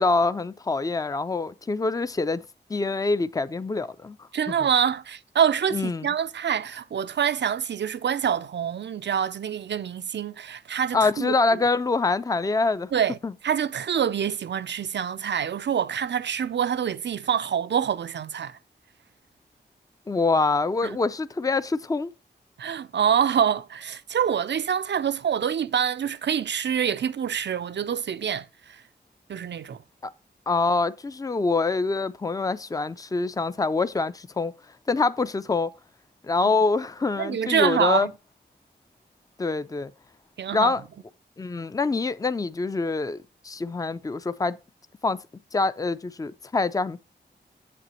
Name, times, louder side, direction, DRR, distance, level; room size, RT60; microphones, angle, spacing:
voice 1, 0.0-2.4 2.7-4.3 5.7-6.1 10.9-12.9 13.2-13.3 20.1-22.1 30.0-30.1 30.5-34.5 34.9-35.7 36.2-38.1 39.4-39.9 40.5-40.8 41.4-44.6 45.0-45.2 45.5-47.0, left 3 dB, 20° left, 0.4 m, -25 dB
voice 2, 4.3-11.3 12.9-13.2 13.4-18.6 20.8-21.0 22.6-28.8 29.3-29.8 36.4-36.5 37.2-38.1 40.4-40.8, right 8 dB, 75° right, 0.5 m, -26 dB
7.6 x 7.5 x 3.0 m
wide cardioid pair, 70°, 18 cm